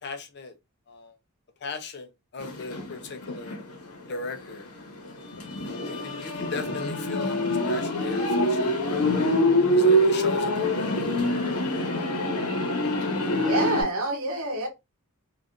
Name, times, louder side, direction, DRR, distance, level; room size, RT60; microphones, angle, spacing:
voice 1, 0.0-0.5 0.9-1.1 1.6-3.6 4.1-4.7 5.0-5.1 5.6-9.1 9.7-10.9, left 4 dB, 50° left, 0.5 m, -37 dB
sound 1, 2.4-3.7 4.1-4.2 4.8-13.8, equal, 85° left, 1.0 m, -25 dB
voice 2, 13.4-14.7, right 1 dB, 70° right, 0.9 m, -27 dB
3.5 x 2.5 x 2.4 m
head